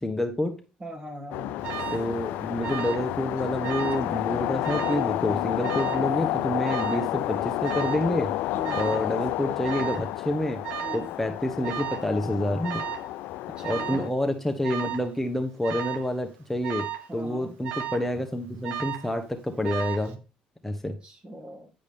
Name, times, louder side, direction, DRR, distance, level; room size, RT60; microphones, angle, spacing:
voice 1, 0.0-0.6 1.9-8.3 8.7-10.6 10.9-12.8 13.6-16.9 17.1-20.2 20.6-21.0, left 1 dB, 10° left, 5 dB, 1.0 m, -28 dB
voice 2, 0.8-1.7 8.5-9.2 10.8-11.1 13.5-14.1 17.1-17.5 20.9-21.7, equal, 35° right, 4 dB, 2.2 m, -40 dB
sound 1, 1.3-14.1, left 15 dB, 80° left, 0.4 m, -30 dB
Alarm, 1.6-2.1 2.6-3.1 3.4-4.1 4.6-5.1 5.6-6.1 6.6-7.1 7.6-8.1 8.6-9.1 9.6-10.1 10.6-11.1 11.6-12.1 12.6-13.1 13.6-14.1 14.6-15.1 15.6-16.1 16.6-17.1 17.6-18.1 18.6-19.1 19.6-20.1, right 10 dB, 75° right, 1.2 m, -34 dB
9.9 x 5.2 x 3.5 m, 0.32 s
supercardioid pair, 75°, 3 cm